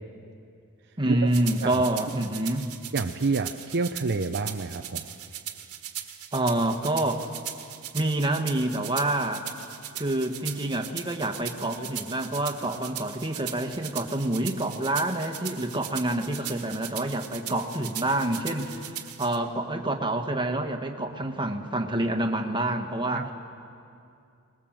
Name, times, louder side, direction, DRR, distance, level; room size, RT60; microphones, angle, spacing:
voice 1, 1.0-2.7 6.3-7.3 7.9-9.4 9.9-18.9 19.2-23.3, right 1 dB, 20° right, 4 dB, 1.5 m, -27 dB
sound 1, 1.3-19.4, right 11 dB, 80° right, 1.7 m, -39 dB
voice 2, 2.9-5.0 23.1-23.3, right 3 dB, 50° right, 6 dB, 0.7 m, -28 dB
26.5 x 20.5 x 7.5 m, 2.5 s
head